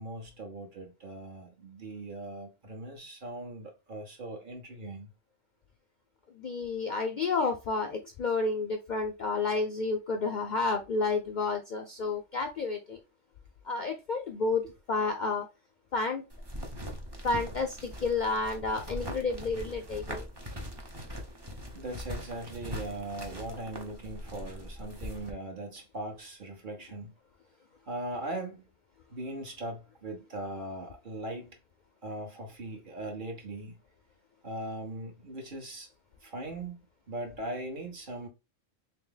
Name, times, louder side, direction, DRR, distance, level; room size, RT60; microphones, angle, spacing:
voice 1, 0.0-5.1 21.7-27.1 27.9-28.7 29.1-31.6 32.0-33.8 34.4-35.9 36.2-36.8 37.1-38.3, right 1 dB, 45° right, 1.1 m, -39 dB
voice 2, 6.4-13.0 13.7-14.6 14.9-15.5 15.9-16.2 17.2-20.3, left 3 dB, 55° left, 0.5 m, -30 dB
sound 1, 16.3-25.3, equal, 25° right, 0.6 m, -41 dB
3.3 x 2.8 x 3.8 m
omnidirectional pair, 1.3 m